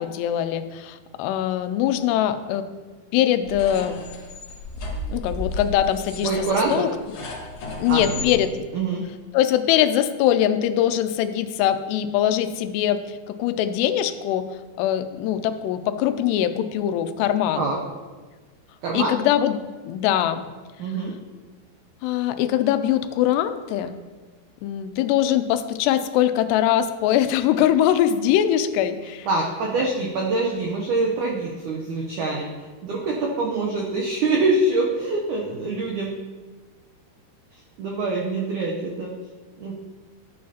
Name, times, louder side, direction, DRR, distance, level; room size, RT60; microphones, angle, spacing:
voice 1, 0.0-2.7 3.1-4.0 5.1-6.9 7.8-8.7 9.3-14.5 14.8-17.7 18.9-19.6 19.9-20.4 22.0-24.0 24.6-29.3 29.8-29.9, left 11 dB, 90° left, 10 dB, 2.7 m, -22 dB
sound 1, 3.4-8.3, left 2 dB, 70° left, 1.3 m, -34 dB
voice 2, 6.2-6.8 7.9-8.2 8.7-9.0 17.5-17.8 18.8-19.1 20.8-21.2 29.3-32.5 32.8-36.2 37.8-39.1 39.6-39.7, right 3 dB, 85° right, -1 dB, 1.7 m, -25 dB
11.5 x 8.5 x 2.8 m, 1.4 s
omnidirectional pair, 4.7 m